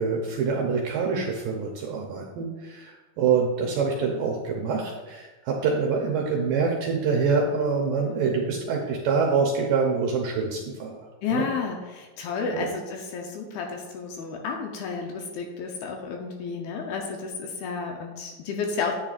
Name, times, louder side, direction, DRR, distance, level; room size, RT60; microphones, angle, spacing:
voice 1, 0.0-11.0 11.3-11.5 12.4-12.7, right 5 dB, 75° right, 0 dB, 2.1 m, -25 dB
voice 2, 11.2-18.9, left 5 dB, 75° left, 2 dB, 2.4 m, -31 dB
10.5 x 8.5 x 2.5 m, 1.2 s
omnidirectional pair, 4.9 m